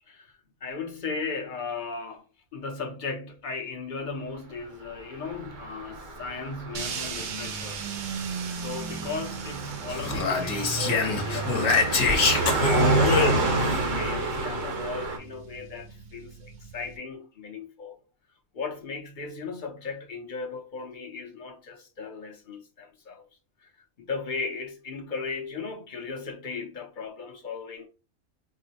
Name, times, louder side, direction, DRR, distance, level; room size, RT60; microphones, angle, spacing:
voice 1, 0.6-2.2 2.5-7.8 8.6-11.7 12.0-18.0 18.5-23.2 23.6-27.9, left 4 dB, 45° left, 0.7 m, -37 dB
Car passing by, 5.2-15.2, right 2 dB, 70° right, 1.3 m, -29 dB
sound 1, 6.7-17.0, right 5 dB, 90° right, 0.4 m, -37 dB
Speech, 9.9-13.8, left 4 dB, 65° left, 1.1 m, -25 dB
4.5 x 2.0 x 2.8 m
omnidirectional pair, 1.4 m